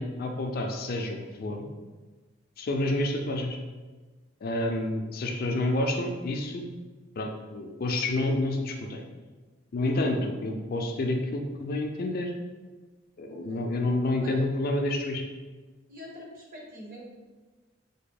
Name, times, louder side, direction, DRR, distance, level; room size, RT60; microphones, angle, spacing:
voice 1, 0.0-1.7 2.6-3.6 4.4-6.6 7.2-9.0 9.7-12.3 13.2-15.2, left 1 dB, 50° left, 3 dB, 0.4 m, -29 dB
voice 2, 13.3-13.7 14.2-14.4 15.9-17.0, equal, 45° right, -2 dB, 0.8 m, -44 dB
3.5 x 2.2 x 3.7 m, 1.3 s
head